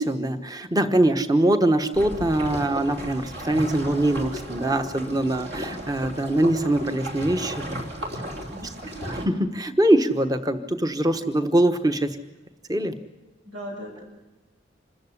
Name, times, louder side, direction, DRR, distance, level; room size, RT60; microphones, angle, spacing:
voice 1, 0.0-7.8 9.2-12.2 12.7-12.9, right 1 dB, 20° right, 9 dB, 1.2 m, -23 dB
sound 1, 1.9-9.3, equal, 55° right, 3.3 m, -35 dB
voice 2, 8.5-9.1 13.4-14.0, equal, 90° right, 2 dB, 6.3 m, -38 dB
26.5 x 14.0 x 9.9 m, 1.1 s
head